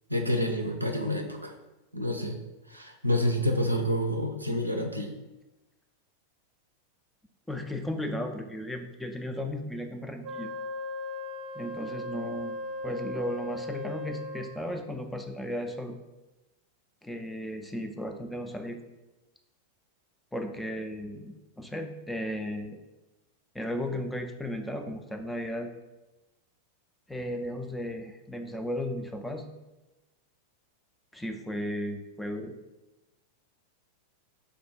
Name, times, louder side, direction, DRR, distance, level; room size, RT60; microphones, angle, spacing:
voice 1, 0.1-1.5 1.9-2.4 2.7-5.1, equal, 85° right, 4 dB, 0.4 m, -28 dB
voice 2, 7.5-10.5 11.6-12.5 12.8-15.9 17.0-18.8 20.3-22.8 23.5-25.7 27.1-29.5 31.1-32.6, left 1 dB, 5° left, 4 dB, 0.4 m, -35 dB
Wind instrument woodwind instrument, 10.2-14.8, left 1 dB, 40° right, 0.7 m, -37 dB
3.5 x 2.3 x 4.3 m, 1.1 s
figure-of-eight pair, 90°, 0 cm